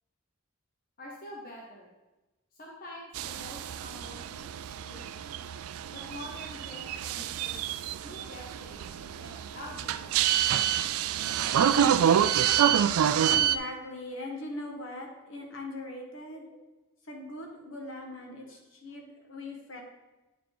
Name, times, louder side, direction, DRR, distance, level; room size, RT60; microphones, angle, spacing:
voice 1, 1.0-1.9 2.6-4.5 4.8-5.2 5.9-10.4 14.2-14.3 16.5-16.6, left 1 dB, 40° left, -2 dB, 1.0 m, -47 dB
sound 1, 3.1-13.6, right 9 dB, 85° right, 0.3 m, -27 dB
voice 2, 13.2-16.4 17.1-19.8, left 1 dB, 65° left, 1 dB, 1.4 m, -40 dB
9.4 x 4.7 x 3.9 m, 1.1 s
head